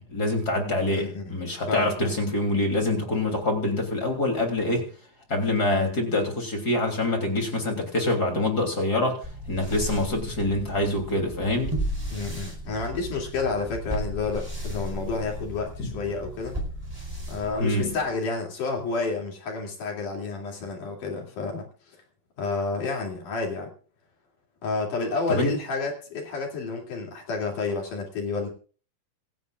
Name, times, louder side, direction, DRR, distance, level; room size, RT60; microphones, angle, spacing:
voice 1, 0.0-4.9 5.3-9.2 9.5-11.7 15.8-15.9 17.6-18.0 25.3-25.5, left 2 dB, 25° left, 2 dB, 3.3 m, -25 dB
voice 2, 0.9-1.3 1.7-2.1 12.1-16.6 17.3-22.0 22.4-23.7 24.6-28.5, left 4 dB, 60° left, 1 dB, 4.2 m, -30 dB
sound 1, 9.2-18.1, equal, 5° right, 4.2 m, -35 dB
26.5 x 10.0 x 2.4 m, 0.38 s
omnidirectional pair, 4.2 m